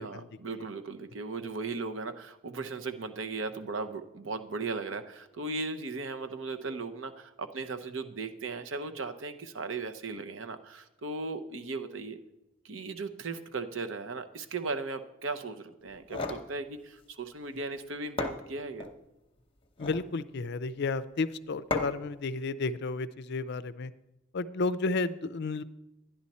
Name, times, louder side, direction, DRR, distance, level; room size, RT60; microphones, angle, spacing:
voice 1, 0.0-12.2 12.6-18.9, right 3 dB, 65° right, 9 dB, 0.8 m, -37 dB
sound 1, 15.9-16.5 17.7-17.8 18.2-19.0 19.6-20.1 21.7-22.1, left 2 dB, 25° left, 0.9 m, -34 dB
voice 2, 19.8-23.9 24.3-25.6, left 3 dB, 55° left, 16 dB, 0.4 m, -32 dB
12.0 x 10.5 x 4.2 m, 0.96 s
head